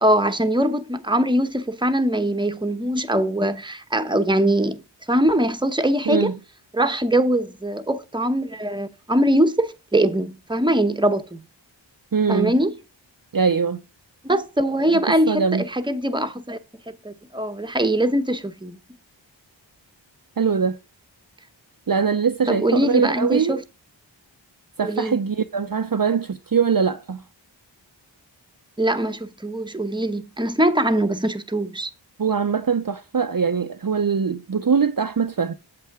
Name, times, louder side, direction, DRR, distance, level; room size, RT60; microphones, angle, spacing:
voice 1, 0.0-4.8 5.1-6.3 6.7-11.4 12.3-12.7 14.2-16.6 16.9-18.8 22.5-23.6 24.8-25.2 28.8-31.9, right 1 dB, 10° right, 1.0 m, -22 dB
voice 2, 6.1-6.4 12.1-12.5 13.3-13.8 15.3-15.6 20.4-20.8 21.9-23.6 24.8-27.2 32.2-35.5, right 6 dB, 50° right, 0.7 m, -22 dB
8.3 x 7.7 x 3.6 m
wide cardioid pair, 50°, 45 cm